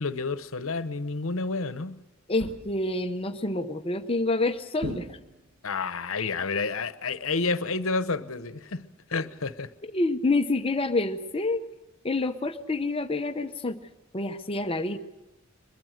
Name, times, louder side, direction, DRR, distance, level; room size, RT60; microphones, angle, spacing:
voice 1, 0.0-2.0 5.6-9.7, left 4 dB, 80° left, 1.0 m, -30 dB
voice 2, 2.3-5.2 9.8-11.6 12.0-13.8 14.1-15.0, left 2 dB, 25° left, 0.8 m, -27 dB
sound 1, 2.4-3.0 4.8-5.6, right 2 dB, 90° right, 1.1 m, -39 dB
23.0 x 21.5 x 6.5 m
head